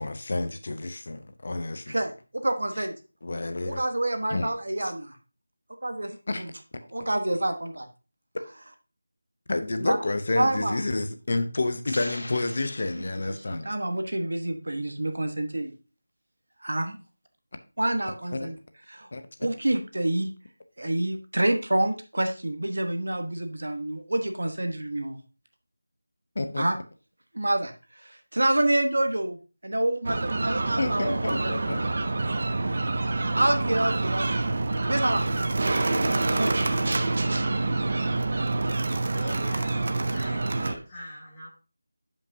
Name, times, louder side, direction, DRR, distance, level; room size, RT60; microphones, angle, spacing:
voice 1, 0.0-2.0 3.2-3.8 4.3-4.5 4.8-4.9 6.3-6.4 9.5-13.7 18.3-18.5 19.1-19.2 26.4-26.6 30.8-31.8, left 2 dB, 35° left, 9 dB, 0.6 m, -29 dB
voice 2, 1.9-2.9 3.7-5.2 5.8-6.5 6.9-7.9 9.8-10.0 10.3-10.8 13.0-15.7 16.6-17.0 17.8-18.6 18.9-19.1 19.4-20.3 20.8-25.2 26.6-26.7 27.3-29.4 29.6-31.9 32.2-32.3 32.6-32.8 33.3-34.5 34.9-35.3 36.3-36.6, right 1 dB, 65° right, 6 dB, 1.1 m, -28 dB
sound 1, 11.9-13.8, left 1 dB, 65° left, 1.9 m, -41 dB
sound 2, 30.0-40.7, right 2 dB, 30° right, 0.4 m, -27 dB
voice 3, 39.1-41.5, equal, 10° left, -7 dB, 1.4 m, -42 dB
11.0 x 5.3 x 2.7 m, 0.33 s
figure-of-eight pair, 180°, 0 cm